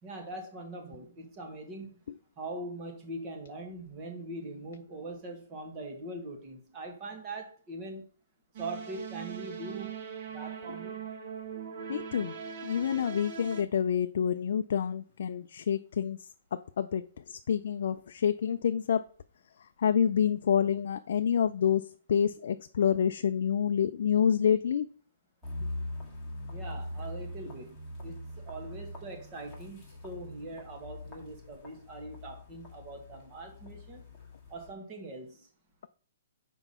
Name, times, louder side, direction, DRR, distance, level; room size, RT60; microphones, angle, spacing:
voice 1, 0.0-1.9 2.4-8.0 8.6-10.0 10.3-11.0 25.6-25.7 26.5-34.0 34.5-35.5, right 2 dB, 20° right, 1.4 m, -42 dB
sound 1, 8.5-13.6, right 7 dB, 35° right, 1.0 m, -41 dB
voice 2, 11.9-12.4 12.6-16.2 16.5-19.1 19.8-24.9, left 8 dB, 55° left, 0.3 m, -28 dB
sound 2, 25.4-34.7, left 1 dB, ahead, 1.7 m, -42 dB
6.1 x 4.5 x 5.5 m
hypercardioid pair, 175°, 0 cm